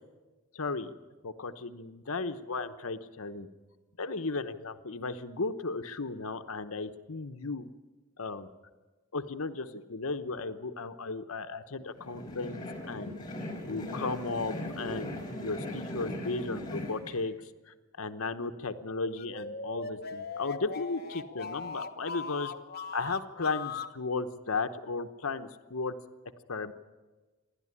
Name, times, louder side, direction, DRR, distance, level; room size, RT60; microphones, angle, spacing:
voice 1, 0.5-0.9 1.2-3.5 4.0-7.7 8.2-8.5 9.1-13.1 13.6-22.5 22.9-26.0 26.5-26.7, left 3 dB, 75° left, 9 dB, 1.0 m, -35 dB
sound 1, 12.0-17.1, left 1 dB, 20° left, 5.1 m, -39 dB
sound 2, 19.0-24.0, left 4 dB, 45° left, 1.2 m, -39 dB
28.0 x 11.5 x 9.8 m, 1.2 s
head